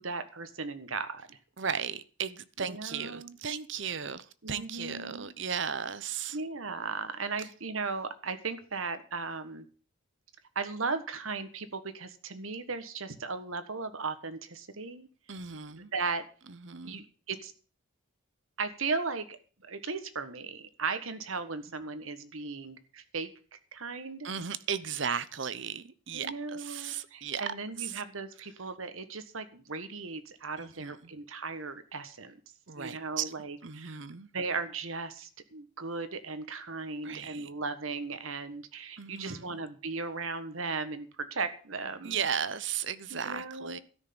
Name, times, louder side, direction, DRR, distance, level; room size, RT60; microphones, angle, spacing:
voice 1, 0.0-1.4 2.6-3.4 4.4-5.3 6.3-9.7 10.5-15.1 15.7-16.2 16.8-17.5 18.6-19.4 19.6-24.3 26.1-32.4 32.7-34.0 34.3-42.2 43.1-43.8, right 4 dB, 75° right, 1.5 m, -37 dB
voice 2, 1.6-6.4 15.3-15.9 16.6-17.0 24.2-27.5 30.6-31.0 32.7-33.3 33.6-34.3 37.0-37.5 39.0-39.6 42.0-43.8, right 7 dB, 60° right, 0.8 m, -35 dB
13.0 x 6.5 x 8.7 m
head